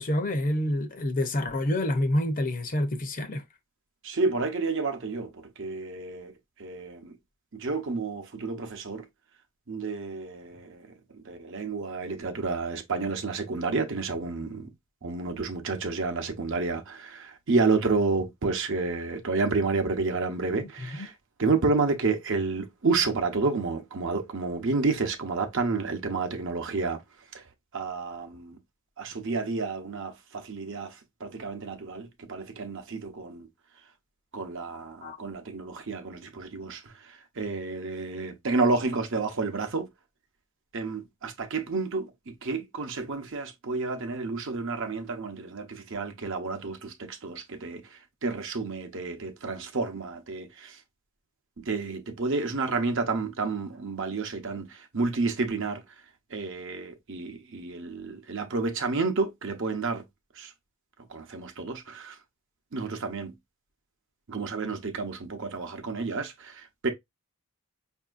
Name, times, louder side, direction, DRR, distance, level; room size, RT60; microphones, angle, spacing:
voice 1, 0.0-3.4 20.8-21.1 35.0-35.2, left 1 dB, 40° left, 0.6 m, -28 dB
voice 2, 4.0-6.3 6.6-7.1 7.5-9.0 9.7-14.7 15.0-21.1 21.4-27.0 27.3-27.4 27.7-28.6 29.0-33.5 34.3-39.9 40.7-47.8 48.2-50.8 51.6-55.8 56.3-60.0 60.4-60.5 61.1-62.2 62.7-63.3 64.3-66.9, right 3 dB, 60° right, 0.8 m, -30 dB
5.4 x 2.7 x 2.5 m
head